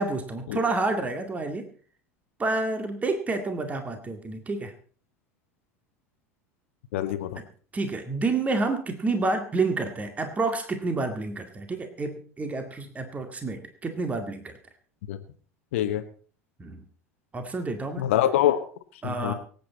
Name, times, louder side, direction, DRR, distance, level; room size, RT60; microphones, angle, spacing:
voice 1, 0.0-1.7 2.4-4.7 7.7-14.5 16.6-16.8 17.3-18.1 19.0-19.3, right 3 dB, 20° right, 7 dB, 2.1 m, -29 dB
voice 2, 6.9-7.4 15.1-15.2 15.7-16.0 18.0-18.6 19.0-19.3, left 12 dB, 60° left, 8 dB, 1.2 m, -24 dB
25.0 x 8.6 x 4.2 m, 0.42 s
figure-of-eight pair, 75°, 8 cm